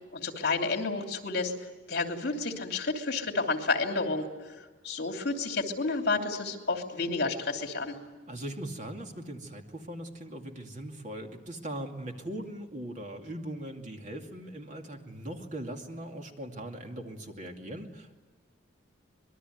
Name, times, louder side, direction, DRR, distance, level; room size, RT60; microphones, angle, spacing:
voice 1, 0.1-1.5 1.9-4.3 4.8-8.0, left 3 dB, 55° left, 3 dB, 3.0 m, -30 dB
voice 2, 8.3-18.1, right 1 dB, 40° right, 3 dB, 2.5 m, -40 dB
26.0 x 21.5 x 9.4 m, 1.4 s
head